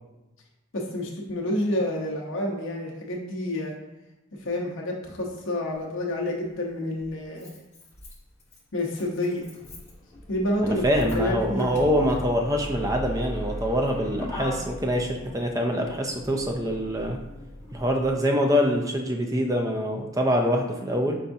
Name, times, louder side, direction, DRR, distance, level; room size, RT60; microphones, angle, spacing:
voice 1, 0.7-3.8 4.4-7.6 8.7-9.5 10.3-11.7, left 1 dB, 60° left, -2 dB, 0.8 m, -29 dB
Motor vehicle (road), 5.7-5.8 7.0-18.1, left 1 dB, 10° left, 0.9 m, -38 dB
voice 2, 10.6-17.2 17.7-21.2, equal, 15° right, 3 dB, 0.4 m, -25 dB
5.5 x 3.5 x 2.6 m, 1.0 s
head